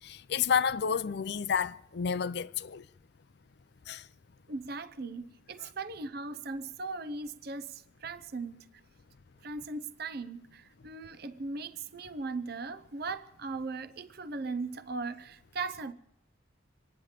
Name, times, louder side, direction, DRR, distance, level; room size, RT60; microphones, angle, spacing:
voice 1, 0.0-2.8 3.9-4.1 5.6-5.7, left 7 dB, 55° left, 0.5 m, -30 dB
voice 2, 4.5-8.7 9.4-15.9, right 3 dB, 50° right, 0.6 m, -38 dB
26.5 x 9.7 x 5.0 m
head